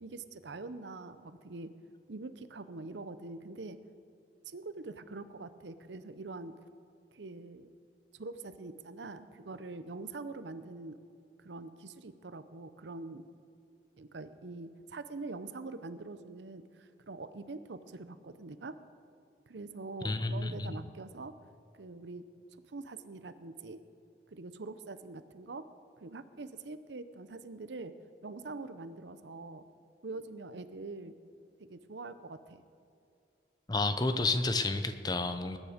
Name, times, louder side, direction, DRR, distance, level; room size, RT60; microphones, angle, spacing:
voice 1, 0.0-1.7 2.1-3.8 4.5-6.6 7.1-7.7 8.1-11.0 11.4-13.2 14.0-18.8 19.5-21.3 21.7-22.3 22.7-23.8 24.3-25.7 26.0-28.0 28.2-29.7 30.0-31.1 31.6-32.6, right 3 dB, 85° right, 12 dB, 0.7 m, -44 dB
voice 2, 20.0-20.8 33.7-35.6, left 3 dB, 25° left, 10 dB, 0.6 m, -30 dB
20.0 x 9.8 x 5.1 m, 2.4 s
head